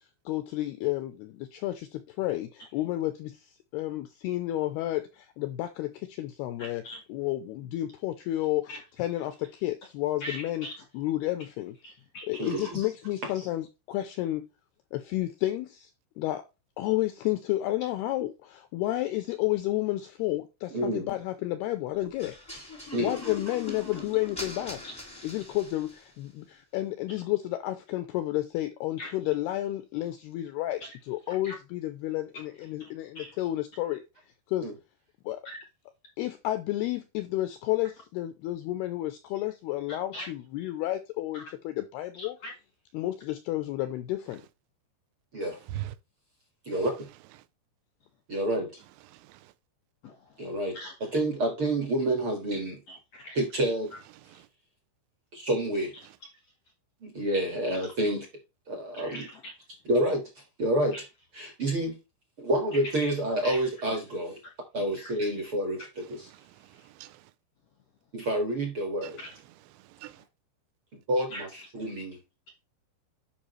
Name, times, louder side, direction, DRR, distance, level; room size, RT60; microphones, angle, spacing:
voice 1, 0.3-6.8 7.1-10.7 10.9-11.8 12.2-14.5 14.9-15.9 16.2-16.4 16.8-22.4 23.0-24.8 25.2-34.0 34.5-34.7 35.3-35.4 36.2-42.4 42.9-44.4, left 15 dB, 85° left, 2.3 m, -31 dB
voice 2, 6.6-7.0 8.7-8.8 10.2-10.7 11.8-12.5 24.8-24.9 29.0-29.1 31.4-31.5 32.8-32.9 33.1-33.3 35.4-35.5 40.1-40.3 41.3-41.4 42.2-42.5 50.0-50.1 50.7-50.9 52.9-53.4 59.0-59.5 63.4-63.6 65.0-65.1 69.2-69.3 71.3-71.4, left 1 dB, 70° left, 1.5 m, -41 dB
voice 3, 12.3-12.8 20.7-21.1 22.9-23.1 34.6-34.7 45.3-45.6 46.6-47.1 48.3-48.8 50.4-52.8 53.3-53.9 55.3-55.9 57.0-58.3 58.7-59.3 59.8-61.0 61.3-62.0 62.4-64.4 64.7-66.3 68.1-69.2 71.1-72.2, right 1 dB, 50° right, 1.5 m, -29 dB
sound 1, 22.2-26.1, left 4 dB, 20° left, 0.6 m, -41 dB
voice 4, 49.1-49.5 54.3-54.5 66.2-67.3 69.0-69.1 69.7-70.2, right 13 dB, 80° right, 2.8 m, -42 dB
10.0 x 5.5 x 3.2 m
omnidirectional pair, 5.4 m